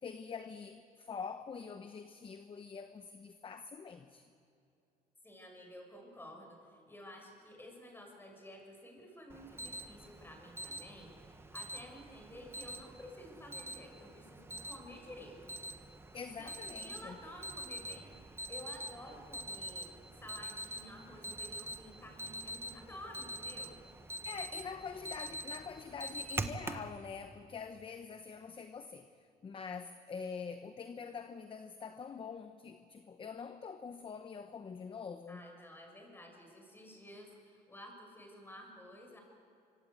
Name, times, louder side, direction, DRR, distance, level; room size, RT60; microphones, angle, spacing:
voice 1, 0.0-4.2 16.1-17.2 24.2-35.4, left 5 dB, 30° left, 9 dB, 1.0 m, -45 dB
voice 2, 5.2-15.6 16.4-16.5 16.8-18.2 18.5-23.7 35.3-39.2, left 1 dB, 15° left, 2 dB, 6.8 m, -52 dB
Alarm, 9.3-26.9, right 1 dB, 15° right, 1.2 m, -45 dB
25.0 x 24.5 x 8.4 m, 2.6 s
cardioid pair, 110°, 17 cm